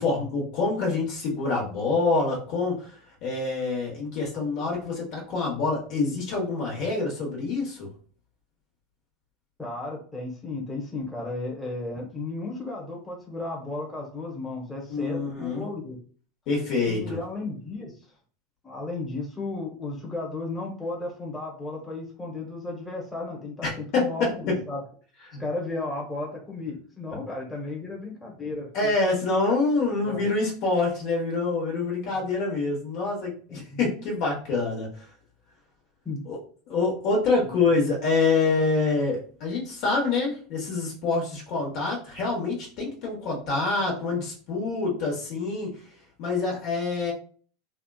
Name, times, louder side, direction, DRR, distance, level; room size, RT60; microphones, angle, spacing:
voice 1, 0.0-3.0 3.2-7.9 14.9-15.6 16.5-17.2 23.6-24.6 25.3-25.4 28.7-35.1 36.3-36.4 36.7-45.8 46.2-47.1, left 3 dB, 55° left, -1 dB, 1.2 m, -26 dB
voice 2, 9.6-16.0 16.9-17.9 18.6-24.8 25.4-28.9 30.0-30.2 32.1-32.2 33.7-33.9 36.0-36.2, left 2 dB, 10° left, -3 dB, 1.1 m, -34 dB
3.4 x 2.4 x 2.4 m, 0.43 s
hypercardioid pair, 100°, 0 cm